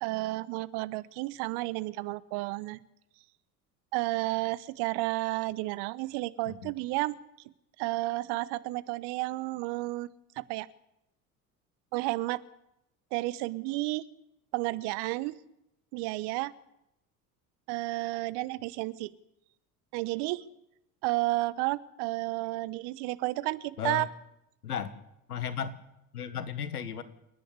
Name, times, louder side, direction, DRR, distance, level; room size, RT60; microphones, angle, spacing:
voice 1, 0.0-2.8 3.9-7.2 7.8-10.1 10.4-10.7 11.9-12.4 13.1-14.0 14.5-15.4 15.9-16.5 17.7-19.1 19.9-20.4 21.0-24.1, right 20 dB, 60° right, 18 dB, 1.2 m, -32 dB
voice 2, 23.8-24.1 24.6-24.9 25.3-25.8 26.1-27.0, left 8 dB, 85° left, 14 dB, 1.6 m, -34 dB
29.5 x 10.5 x 9.7 m, 0.83 s
hypercardioid pair, 65°, 44 cm